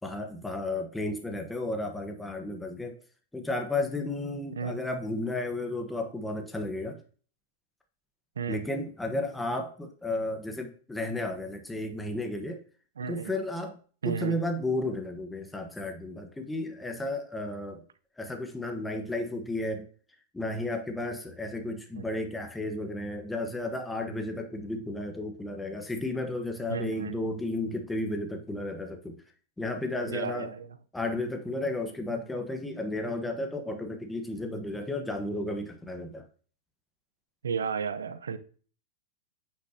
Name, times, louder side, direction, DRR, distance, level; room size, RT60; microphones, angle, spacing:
voice 1, 0.0-3.0 3.3-7.0 8.5-12.6 13.1-13.8 14.0-17.8 18.2-19.9 20.3-29.2 29.6-30.5 30.9-36.2, left 2 dB, 5° left, 1.1 m, -33 dB
voice 2, 13.0-13.3 14.0-14.4 22.0-22.1 26.7-27.2 30.1-30.8 37.4-38.4, right 6 dB, 90° right, 0.7 m, -33 dB
9.6 x 6.6 x 2.8 m
hypercardioid pair, 115°, 0 cm